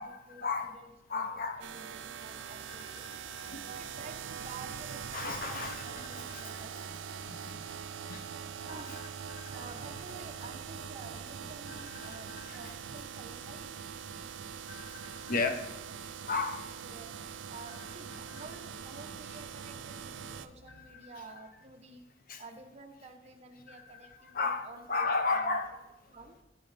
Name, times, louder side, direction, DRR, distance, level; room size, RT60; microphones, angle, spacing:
voice 1, 0.0-0.8 1.1-1.6 3.5-3.6 5.1-5.9 6.3-6.5 7.3-7.4 8.1-8.2 12.0-12.2 12.4-12.7 14.7-14.8 15.3-15.7 16.3-16.6 18.3-18.4 19.1-19.2 20.7-20.8 21.1-21.2 22.3-22.4 23.7-23.8 24.3-25.8, left 4 dB, 50° left, 8 dB, 0.7 m, -33 dB
voice 2, 0.7-3.1 3.7-6.7 8.7-9.0 9.5-13.7 16.8-17.1 17.5-22.0 22.4-25.6 26.1-26.3, right 3 dB, 35° right, 4 dB, 0.9 m, -50 dB
sound 1, 1.6-20.5, right 7 dB, 90° right, 0.4 m, -43 dB
13.0 x 5.6 x 3.3 m, 0.97 s
head